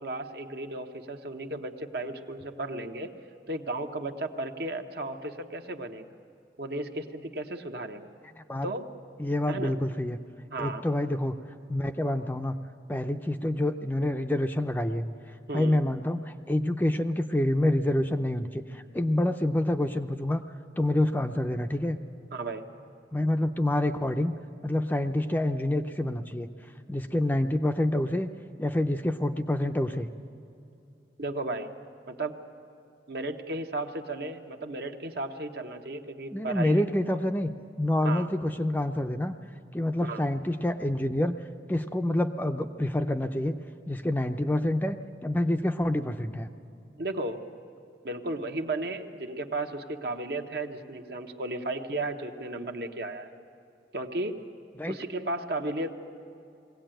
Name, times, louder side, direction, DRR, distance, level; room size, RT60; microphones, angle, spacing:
voice 1, 0.0-3.1 3.5-6.1 6.6-8.1 8.6-8.8 9.5-9.7 10.5-10.8 15.5-15.8 22.3-22.7 31.2-31.7 32.1-32.3 33.1-36.8 38.0-38.3 40.0-40.2 47.0-47.4 48.0-53.3 53.9-54.4 54.9-55.9, right 2 dB, 60° right, 5 dB, 1.1 m, -34 dB
voice 2, 8.4-8.7 9.2-10.2 10.6-11.3 11.7-12.5 12.9-15.1 15.5-20.4 20.8-22.0 23.1-24.3 24.6-26.5 26.9-28.3 28.6-30.1 36.3-37.5 37.8-39.3 39.7-41.4 41.7-43.6 43.9-45.0 45.2-46.5 54.8-55.0, left 1 dB, 10° left, 6 dB, 0.5 m, -27 dB
21.5 x 17.0 x 9.0 m, 2.7 s
head